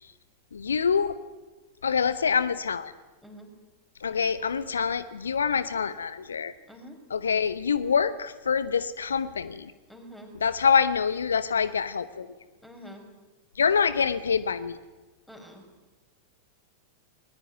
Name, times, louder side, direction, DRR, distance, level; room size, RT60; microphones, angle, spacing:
voice 1, 0.5-1.2 1.8-2.9 4.0-6.5 7.1-9.7 10.4-12.3 13.5-14.8, left 6 dB, 70° left, 15 dB, 0.9 m, -26 dB
voice 2, 9.9-10.3 12.6-13.1 15.3-15.6, equal, ahead, 3 dB, 5.9 m, -46 dB
21.5 x 20.5 x 9.4 m, 1.2 s
figure-of-eight pair, 90°, 0 cm